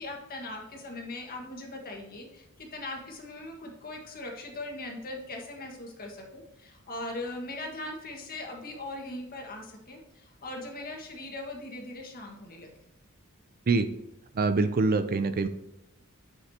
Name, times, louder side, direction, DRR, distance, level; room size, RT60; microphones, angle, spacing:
voice 1, 0.0-12.7, left 2 dB, 45° left, 1 dB, 1.7 m, -40 dB
voice 2, 14.3-15.5, right 3 dB, 45° right, 10 dB, 0.5 m, -25 dB
9.4 x 5.7 x 2.9 m, 0.88 s
head